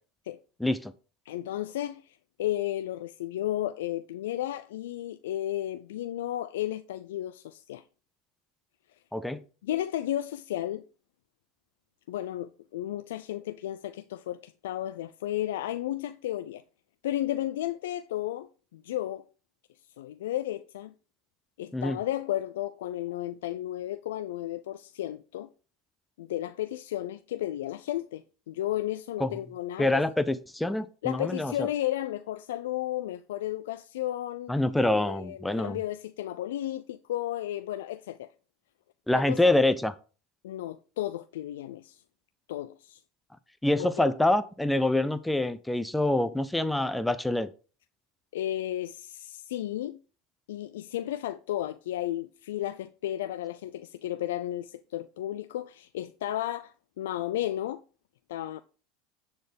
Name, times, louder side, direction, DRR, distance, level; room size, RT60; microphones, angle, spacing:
voice 1, 0.6-0.9 9.1-9.4 21.7-22.0 29.2-29.3 29.8-31.7 34.5-35.8 39.1-39.9 43.6-47.5, left 1 dB, 5° left, 0.6 m, -26 dB
voice 2, 1.3-7.8 9.6-10.8 12.1-16.6 17.0-19.2 20.0-20.9 21.6-25.5 26.2-30.0 31.0-34.5 35.0-38.3 39.1-39.4 40.4-42.0 42.5-43.0 43.8-44.1 48.3-50.0 50.5-57.8 58.3-58.6, left 13 dB, 90° left, 0.4 m, -33 dB
10.0 x 4.4 x 5.2 m
supercardioid pair, 120°, 0 cm